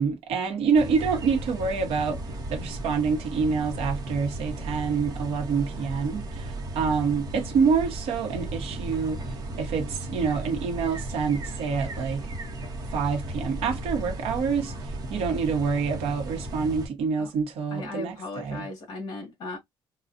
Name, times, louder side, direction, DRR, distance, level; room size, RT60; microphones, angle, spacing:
voice 1, 0.0-2.2 2.5-12.3 12.9-18.7, right 5 dB, 80° right, 1.1 m, -27 dB
sound 1, 0.7-16.9, right 1 dB, 40° right, 1.0 m, -35 dB
voice 2, 17.7-19.6, left 3 dB, 45° left, 1.7 m, -37 dB
4.0 x 2.4 x 2.5 m
cardioid pair, 180°, 10 cm